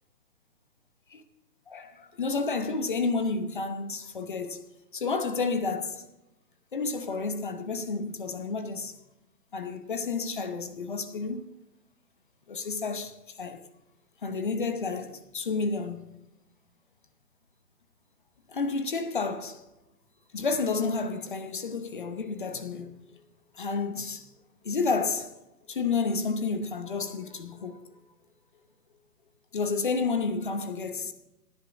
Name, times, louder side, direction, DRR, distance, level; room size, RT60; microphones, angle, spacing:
voice 1, 1.7-4.6 4.9-6.0 6.7-8.9 9.5-11.5 12.5-13.6 14.2-16.2 18.5-19.6 20.3-23.0 23.5-24.3 24.6-25.3 25.7-27.8 29.5-31.1, left 4 dB, 30° left, 0.9 m, -30 dB
17.5 x 10.5 x 4.1 m
figure-of-eight pair, 145°, 49 cm